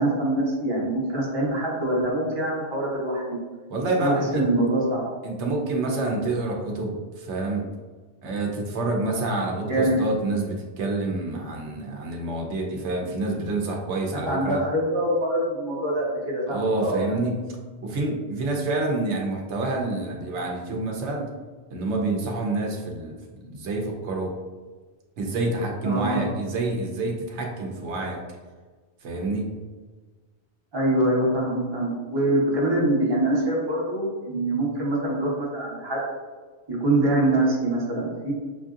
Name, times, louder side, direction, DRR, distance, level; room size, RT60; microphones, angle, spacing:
voice 1, 0.0-3.4 4.0-5.1 9.7-10.0 14.1-17.2 25.8-26.2 30.7-36.0 36.7-38.3, right 1 dB, 25° right, -5 dB, 1.0 m, -24 dB
voice 2, 3.7-4.5 5.2-7.6 8.2-14.6 16.5-17.5 17.8-21.3 21.7-24.3 25.2-28.2 29.0-29.5, right 2 dB, 90° right, 0 dB, 1.0 m, -28 dB
5.8 x 2.6 x 2.4 m, 1.4 s
omnidirectional pair, 1.2 m